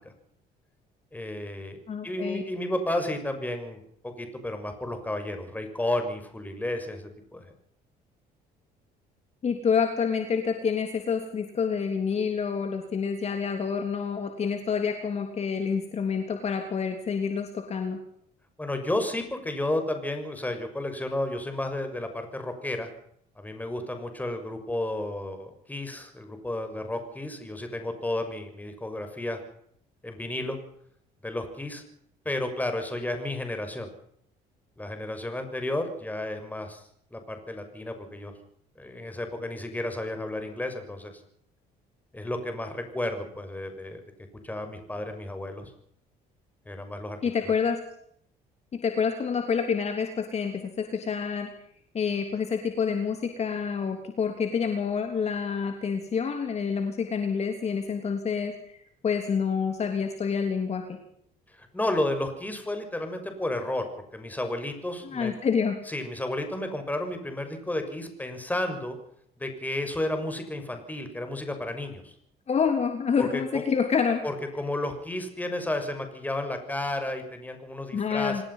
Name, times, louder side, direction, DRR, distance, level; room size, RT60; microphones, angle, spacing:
voice 1, 1.1-7.4 18.6-22.9 23.4-29.4 30.0-30.6 31.2-31.8 32.2-33.9 34.8-36.8 37.1-38.3 38.8-41.1 42.1-44.0 44.4-45.7 46.7-47.2 47.4-47.5 61.6-63.9 64.1-65.3 65.9-69.0 69.4-72.1 73.2-73.6 74.2-78.4, left 1 dB, 10° left, 6 dB, 6.3 m, -32 dB
voice 2, 1.9-2.4 9.4-18.0 47.2-47.8 48.8-51.5 51.9-58.5 59.0-61.0 65.0-65.8 72.5-74.2 77.9-78.4, left 6 dB, 40° left, 5 dB, 3.3 m, -27 dB
26.5 x 19.0 x 5.8 m, 0.68 s
cardioid pair, 110°, 17 cm